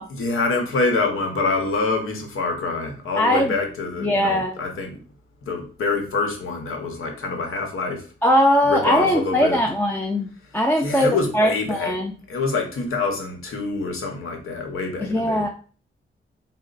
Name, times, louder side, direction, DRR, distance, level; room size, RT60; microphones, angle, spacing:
voice 1, 0.1-5.0 5.5-8.0 8.7-9.6 10.8-12.0 12.3-15.5, left 3 dB, 85° left, 3 dB, 1.0 m, -25 dB
voice 2, 3.2-3.5 4.0-4.6 8.2-12.2 15.0-15.5, equal, 10° left, 0 dB, 0.4 m, -20 dB
4.2 x 2.1 x 3.9 m, 0.39 s
wide cardioid pair, 130°, 21 cm